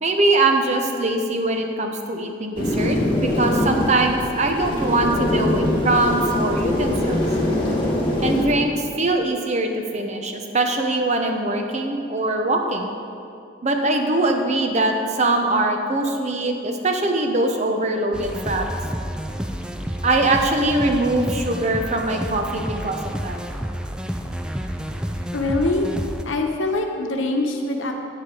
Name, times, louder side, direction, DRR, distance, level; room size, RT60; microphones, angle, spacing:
voice 1, 0.0-7.2 8.2-12.9 13.6-18.7 20.0-23.4, right 2 dB, 35° right, 4 dB, 0.7 m, -22 dB
sound 1, 2.6-8.4, left 1 dB, 25° left, 1.5 m, -22 dB
sound 2, 18.1-26.2, equal, 5° right, 0.3 m, -30 dB
voice 2, 25.3-25.9 26.2-27.9, left 2 dB, 80° left, 3 dB, 1.0 m, -23 dB
10.0 x 8.6 x 3.8 m, 2.5 s
head